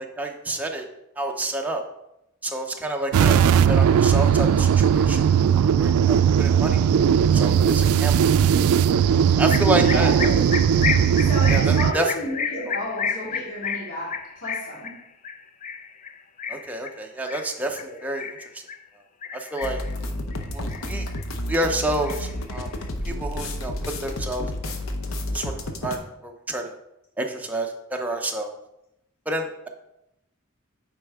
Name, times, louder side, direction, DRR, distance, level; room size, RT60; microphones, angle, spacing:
voice 1, 0.2-0.9 1.2-1.8 2.4-6.9 7.3-8.3 9.4-10.1 11.5-12.1 16.5-18.3 19.3-19.8 20.5-21.1 21.5-22.7 23.0-23.7 24.0-24.5 25.3-25.5 25.8-26.8 27.2-28.5 29.3-29.7, right 1 dB, 5° right, 2 dB, 0.6 m, -29 dB
sound 1, 3.1-11.9, right 8 dB, 90° right, 0.3 m, -18 dB
sound 2, 9.5-18.8 19.2-19.9 20.3-21.2 21.5-22.8, left 6 dB, 35° left, 0.4 m, -32 dB
voice 2, 9.8-10.4 11.2-14.9 17.8-18.0, equal, 85° left, -6 dB, 2.2 m, -32 dB
sound 3, 19.6-26.0, left 1 dB, 70° left, 0.7 m, -31 dB
8.9 x 4.4 x 3.5 m, 0.87 s
head